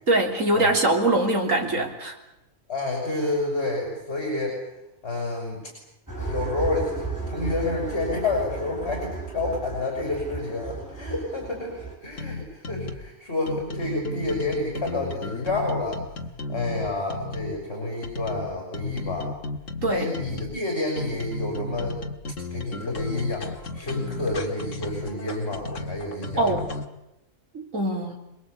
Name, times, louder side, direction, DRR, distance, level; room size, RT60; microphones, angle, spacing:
voice 1, 0.1-2.2 19.8-20.1 26.4-26.6 27.5-28.2, right 1 dB, 85° right, 1 dB, 4.0 m, -23 dB
voice 2, 2.7-4.6 5.0-5.7 6.3-16.0 16.5-19.3 19.9-22.0 22.5-23.5 23.7-26.7, left 2 dB, 55° left, 1 dB, 6.8 m, -29 dB
sound 1, 6.1-11.9, right 4 dB, 15° right, 6.1 m, -34 dB
sound 2, 12.1-13.1 13.5-17.6 18.0-20.6 21.0-26.8, left 2 dB, 75° left, 2.1 m, -34 dB
27.5 x 21.0 x 8.5 m, 0.90 s
omnidirectional pair, 1.3 m